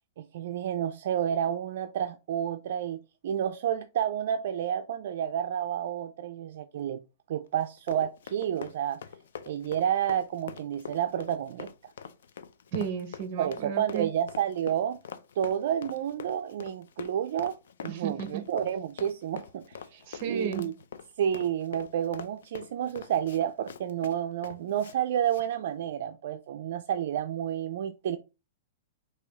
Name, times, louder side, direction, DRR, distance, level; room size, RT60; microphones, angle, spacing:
voice 1, 0.2-7.0 7.3-9.0 9.5-11.9 13.4-15.0 15.4-17.6 17.8-19.9 20.3-20.7 21.2-28.2, right 9 dB, 60° right, 0.4 m, -30 dB
Run, 7.6-25.0 25.3-25.5, left 7 dB, 75° left, 0.5 m, -44 dB
voice 2, 12.7-14.1 17.9-18.4 19.9-20.7, right 7 dB, 35° right, 0.8 m, -34 dB
4.9 x 2.7 x 3.5 m
hypercardioid pair, 165°, 0 cm